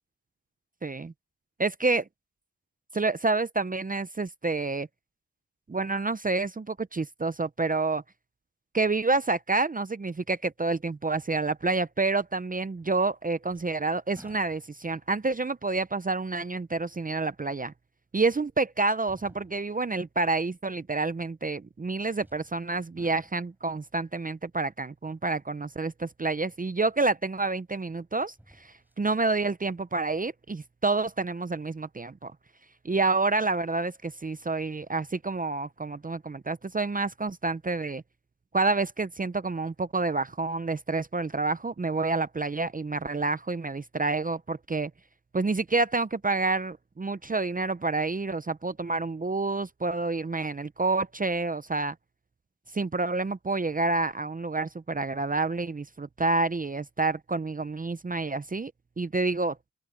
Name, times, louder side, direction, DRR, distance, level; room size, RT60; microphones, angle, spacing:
voice 1, 0.8-1.1 1.6-2.0 2.9-4.9 5.7-8.0 8.7-17.7 18.1-32.3 32.8-38.0 38.5-44.9 45.3-51.9 52.7-58.7 59.0-59.6, right 3 dB, 25° right, 0.7 m, -28 dB
sound 1, 12.8-13.2 13.5-15.0 15.7-15.8 17.6-17.7 19.0-19.9 22.2-22.6 23.0-23.7 26.7-26.8 28.2-29.1 29.5-29.6, equal, 5° right, 6.5 m, -56 dB
open air
wide cardioid pair, 85°, 33 cm